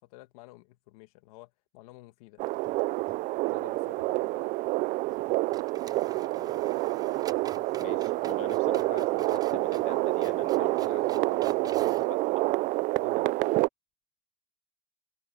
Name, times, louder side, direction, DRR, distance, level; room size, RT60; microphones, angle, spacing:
voice 1, 0.0-2.5 3.5-4.5 7.5-7.7 13.0-13.3, left 20 dB, 75° left, 2.3 m, -52 dB
sound 1, 2.4-3.2 3.5-3.6 5.1-5.2 5.5-12.1, right 7 dB, 20° right, 0.7 m, -49 dB
sound 2, 2.4-13.7, right 20 dB, 45° right, 0.4 m, -28 dB
voice 2, 6.2-6.6 7.7-12.5, left 14 dB, 35° left, 0.7 m, -46 dB
supercardioid pair, 150°, 19 cm